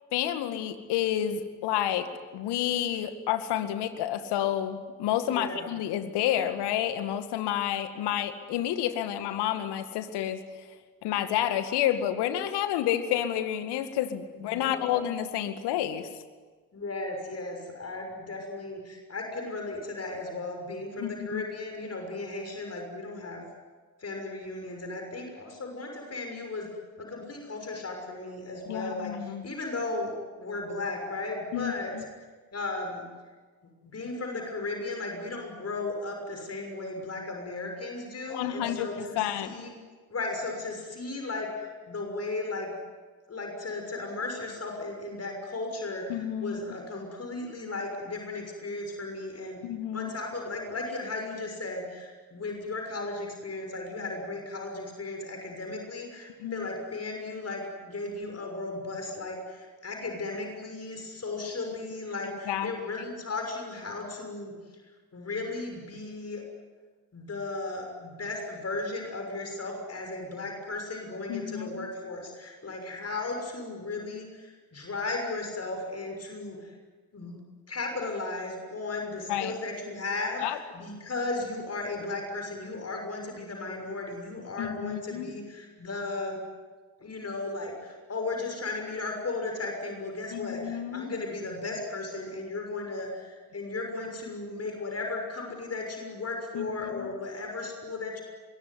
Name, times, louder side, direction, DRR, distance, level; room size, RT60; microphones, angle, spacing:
voice 1, 0.1-10.4 11.0-16.1 21.0-21.4 28.7-29.4 31.5-32.0 38.3-39.6 46.1-46.6 49.6-50.1 56.4-56.7 62.5-62.7 71.3-71.9 79.3-79.5 80.4-80.6 84.6-85.3 90.3-91.1 96.5-96.7 97.0-97.1, left 11 dB, 65° left, 10 dB, 2.1 m, -30 dB
voice 2, 5.3-5.7 14.3-15.0 16.7-23.4 24.0-26.7 27.0-31.9 32.2-32.3 32.5-33.0 33.8-39.7 40.1-42.7 43.3-49.6 49.9-64.5 65.1-66.4 67.1-76.7 77.1-77.4 77.7-86.4 87.0-98.2, left 3 dB, 35° left, 3 dB, 6.5 m, -35 dB
26.0 x 22.5 x 9.7 m, 1.4 s
hypercardioid pair, 50°, 43 cm